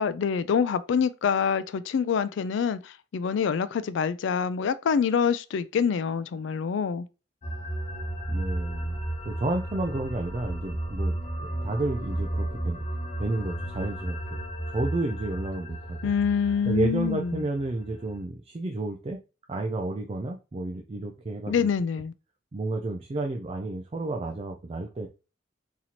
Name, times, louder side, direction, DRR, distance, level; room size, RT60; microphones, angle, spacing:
voice 1, 0.0-7.1 16.0-17.4 21.5-22.1, left 6 dB, 65° left, 0.3 m, -26 dB
sound 1, 7.4-18.2, right 1 dB, 35° left, 0.9 m, -33 dB
voice 2, 8.3-9.0 9.2-12.9 13.2-14.2 14.7-16.1 16.7-19.2 19.5-21.7 22.5-25.1, right 2 dB, 30° right, 0.4 m, -31 dB
4.1 x 2.9 x 2.9 m
head